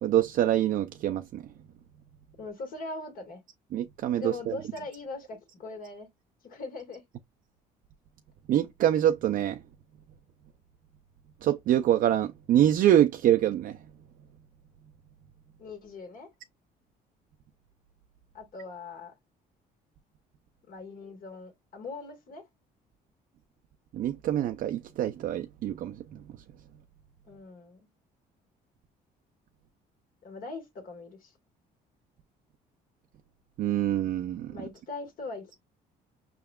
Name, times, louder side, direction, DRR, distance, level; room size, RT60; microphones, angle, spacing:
voice 1, 0.0-1.5 3.7-4.6 8.5-9.6 11.4-13.8 23.9-26.3 33.6-34.7, right 11 dB, 55° right, 0.4 m, -25 dB
voice 2, 2.4-3.4 4.2-6.1 6.4-7.0 15.6-16.3 18.3-19.1 20.7-22.4 27.3-27.9 30.2-31.3 34.5-35.6, left 3 dB, 55° left, 1.8 m, -41 dB
5.7 x 3.4 x 2.3 m
cardioid pair, 110°, 17 cm